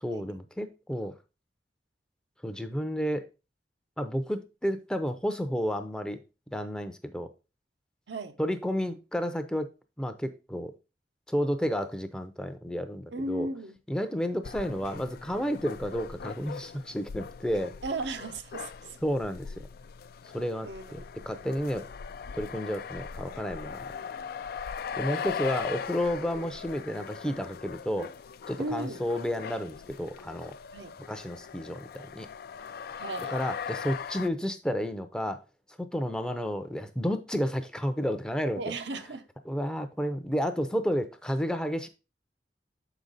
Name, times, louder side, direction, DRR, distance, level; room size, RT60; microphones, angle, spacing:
voice 1, 0.0-1.1 2.4-3.3 4.0-6.2 6.5-7.3 8.4-9.7 10.0-10.7 11.3-13.5 13.9-17.7 19.0-19.5 20.3-21.0 21.3-21.9 22.3-23.8 25.0-28.1 28.5-30.5 31.1-32.3 33.3-35.4 35.8-38.7 39.5-41.9, equal, 5° left, 0.5 m, -31 dB
voice 2, 13.1-13.8 17.8-19.0 20.6-21.1 25.1-25.3 28.6-29.0 30.7-30.9 32.9-33.3 38.6-39.3, right 2 dB, 75° right, 0.7 m, -36 dB
sound 1, 14.4-34.3, left 6 dB, 55° left, 0.3 m, -40 dB
6.8 x 5.1 x 3.9 m
head